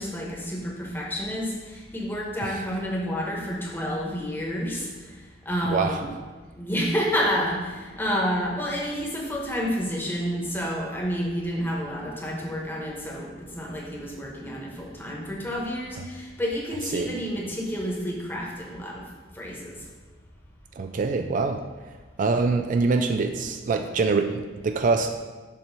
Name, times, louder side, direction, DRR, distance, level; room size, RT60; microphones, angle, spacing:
voice 1, 0.0-6.1 6.5-19.0 19.3-19.9, equal, 10° left, -3 dB, 1.2 m, -29 dB
voice 2, 5.6-6.0 16.9-17.1 20.8-21.6 22.2-25.1, right 4 dB, 45° right, 6 dB, 0.3 m, -24 dB
6.8 x 3.1 x 5.9 m, 1.3 s
head